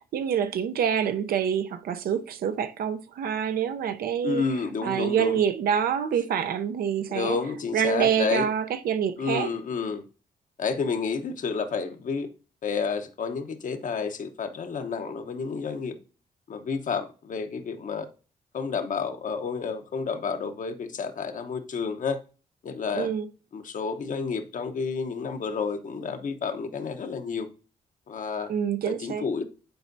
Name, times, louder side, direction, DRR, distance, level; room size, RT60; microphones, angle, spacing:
voice 1, 0.0-4.4 4.8-7.4 7.7-9.5 22.9-23.3 28.5-29.3, right 8 dB, 75° right, 0.6 m, -26 dB
voice 2, 4.2-5.4 7.1-8.5 9.2-10.0 10.6-12.3 12.6-16.0 16.5-18.1 18.5-22.2 22.6-23.1 23.5-27.5 28.1-28.5 28.8-29.4, left 5 dB, 55° left, 0.9 m, -30 dB
10.5 x 4.3 x 2.6 m
cardioid pair, 65°, 16 cm